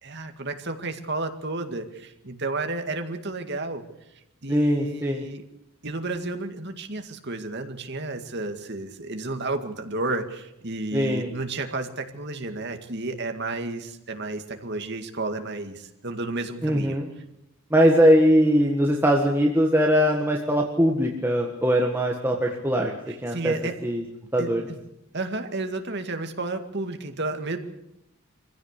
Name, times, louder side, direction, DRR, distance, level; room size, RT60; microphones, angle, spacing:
voice 1, 0.0-3.9 4.4-5.4 5.8-17.0 23.1-23.7 24.4-24.8 25.1-27.6, right 2 dB, 50° right, 6 dB, 2.1 m, -32 dB
voice 2, 4.5-5.2 10.9-11.3 16.6-17.1 17.7-22.9 23.2-23.5 23.8-24.0 24.3-24.6, equal, 10° right, 0 dB, 1.7 m, -21 dB
25.0 x 16.0 x 8.3 m, 0.85 s
head